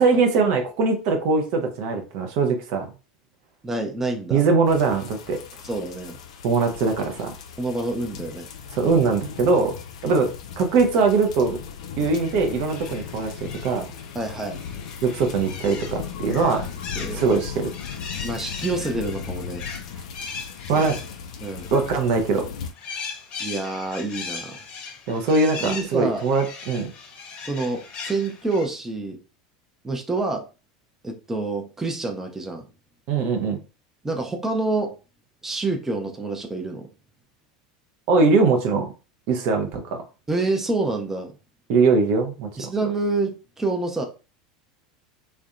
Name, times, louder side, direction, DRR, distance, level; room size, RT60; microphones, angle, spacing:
voice 1, 0.0-2.9 4.3-5.4 6.4-7.3 8.8-9.7 10.0-10.3 10.6-11.6 12.0-13.9 15.0-16.7 17.1-17.7 20.7-21.0 21.7-22.4 25.1-26.9 33.1-33.6 38.1-38.9 39.3-40.0 41.7-42.5, right 4 dB, 55° right, 5 dB, 0.5 m, -21 dB
voice 2, 3.6-4.4 5.6-6.2 7.6-8.5 14.1-14.6 16.9-17.2 18.2-19.6 20.7-20.9 21.4-21.7 23.4-24.6 25.6-26.3 27.4-29.2 29.8-30.4 31.0-32.7 34.0-34.9 35.4-36.9 40.3-41.3 42.6-44.0, right 2 dB, 10° right, 3 dB, 0.6 m, -27 dB
sound 1, 4.7-22.7, left 7 dB, 70° left, 0.3 m, -37 dB
sound 2, 12.2-22.2 22.6-28.7, left 5 dB, 40° left, 0.7 m, -39 dB
2.5 x 2.1 x 2.4 m, 0.32 s
figure-of-eight pair, 80°, 3 cm